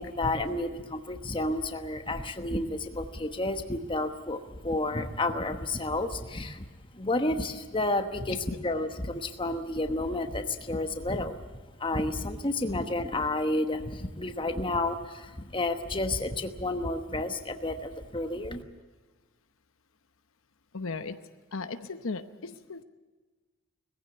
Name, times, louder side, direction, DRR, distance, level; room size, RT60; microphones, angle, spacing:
voice 1, 0.0-6.7 6.9-8.4 8.6-11.4 11.8-18.6, left 2 dB, 20° left, 7 dB, 1.1 m, -31 dB
voice 2, 20.7-21.2 21.5-22.8, left 3 dB, 65° left, 10 dB, 0.9 m, -36 dB
20.0 x 15.5 x 9.5 m, 1.4 s
head